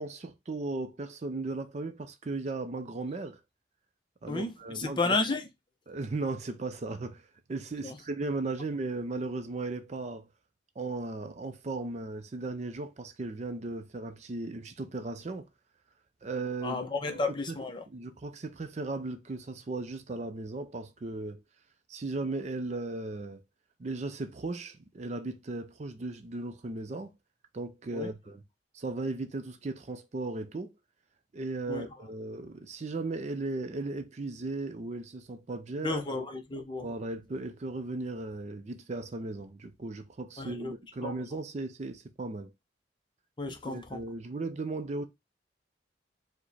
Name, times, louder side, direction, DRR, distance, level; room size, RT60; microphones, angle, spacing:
voice 1, 0.0-3.4 4.2-5.2 5.9-10.3 10.8-15.5 16.2-17.2 17.5-17.6 17.9-21.4 21.9-23.4 23.8-27.1 27.5-28.4 28.7-30.7 31.3-36.1 36.8-42.5 43.7-45.0, right 2 dB, 35° right, 0.4 m, -36 dB
voice 2, 4.3-5.5 7.8-8.0 16.6-17.8 27.9-28.1 31.7-31.8 35.8-36.9 40.4-40.7 41.0-41.1 43.4-44.0, left 3 dB, 25° left, 0.6 m, -32 dB
4.7 x 2.1 x 4.0 m
head